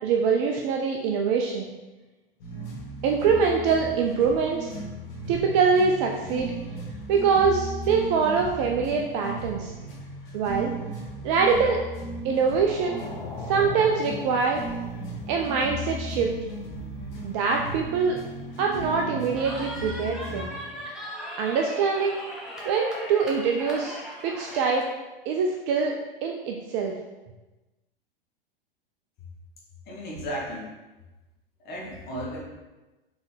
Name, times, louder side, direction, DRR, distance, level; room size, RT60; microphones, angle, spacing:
voice 1, 0.0-1.7 3.0-4.8 5.3-6.5 7.1-9.7 10.3-10.7 11.2-11.8 12.2-13.0 13.5-14.6 15.3-16.3 17.2-18.2 18.6-20.5 21.4-22.2 22.7-24.0 24.2-24.8 25.3-25.9 26.2-26.9, right 5 dB, 35° right, 1 dB, 0.4 m, -24 dB
sound 1, 2.4-20.5, right 1 dB, 50° left, 1.4 m, -36 dB
sound 2, 12.2-20.9, left 2 dB, 15° left, 0.5 m, -45 dB
Cheering, 19.4-24.9, equal, ahead, 0.9 m, -38 dB
voice 2, 29.9-30.7 31.6-32.4, equal, 35° left, -4 dB, 1.3 m, -34 dB
4.3 x 3.2 x 3.4 m, 1.1 s
figure-of-eight pair, 90°, 29 cm